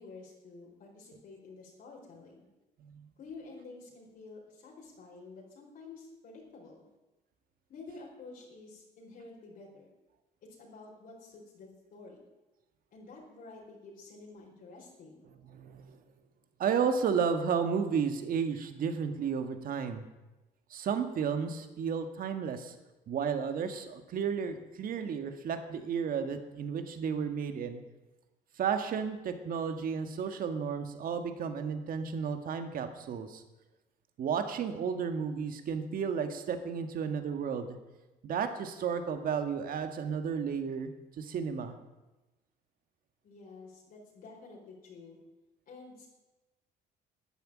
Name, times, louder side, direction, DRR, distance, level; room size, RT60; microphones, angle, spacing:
voice 1, 0.0-2.5 3.2-6.9 7.7-9.9 10.4-12.3 12.9-15.2 43.2-45.2 45.7-46.1, left 3 dB, 60° left, -2 dB, 4.4 m, -50 dB
voice 2, 15.4-16.0 16.6-20.1 20.7-22.7 23.1-27.8 28.6-33.4 34.2-37.8 38.2-41.8, right 6 dB, 55° right, 7 dB, 1.9 m, -33 dB
12.5 x 9.8 x 8.7 m, 1.1 s
cardioid pair, 110°, 17 cm